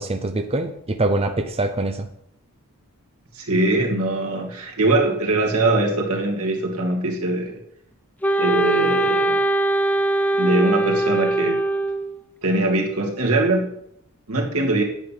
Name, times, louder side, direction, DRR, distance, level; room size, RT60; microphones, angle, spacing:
voice 1, 0.0-2.1, right 2 dB, 25° right, 6 dB, 0.7 m, -24 dB
voice 2, 3.3-7.6 8.4-9.4 10.4-11.6 12.4-13.7 14.3-14.8, right 2 dB, 85° right, 1 dB, 2.6 m, -22 dB
Wind instrument woodwind instrument, 8.2-12.2, right 2 dB, 5° left, 0.6 m, -21 dB
9.9 x 9.0 x 6.0 m, 0.75 s
head